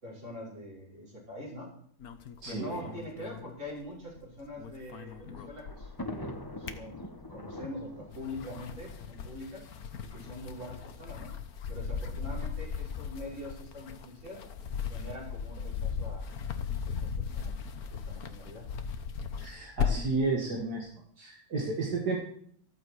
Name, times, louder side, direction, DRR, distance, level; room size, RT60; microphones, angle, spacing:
voice 1, 0.0-1.7 2.5-7.0 7.3-9.6 10.1-11.3 11.7-14.4 14.9-16.3 16.8-17.6 17.9-18.6, left 1 dB, 45° right, -4 dB, 6.5 m, -43 dB
sound 1, 2.0-4.2 4.5-6.1 6.4-7.5 8.0-20.2, left 6 dB, 65° left, 1.5 m, -37 dB
voice 2, 2.4-2.8 19.4-20.9 21.2-22.2, right 3 dB, 80° right, -1 dB, 2.6 m, -32 dB
Thunder, 4.5-9.9 10.7-10.8 11.0-11.1 12.2-12.5, left 1 dB, 15° left, 1.1 m, -44 dB
14.5 x 14.0 x 4.8 m, 0.62 s
omnidirectional pair, 1.7 m